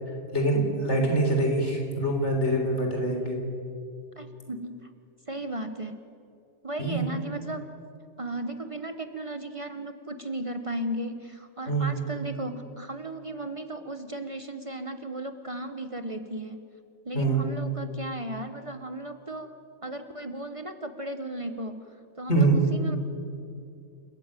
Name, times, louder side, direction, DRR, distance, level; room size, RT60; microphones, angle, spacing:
voice 1, 0.3-3.4 6.8-7.0 11.7-11.9 17.1-17.4 22.3-22.6, right 2 dB, 75° left, 2 dB, 4.3 m, -24 dB
voice 2, 4.2-4.9 5.3-6.0 6.6-7.7 8.2-16.6 17.0-19.5 19.8-23.0, right 1 dB, 30° right, 8 dB, 1.1 m, -35 dB
28.5 x 14.0 x 9.0 m, 2.4 s
omnidirectional pair, 1.2 m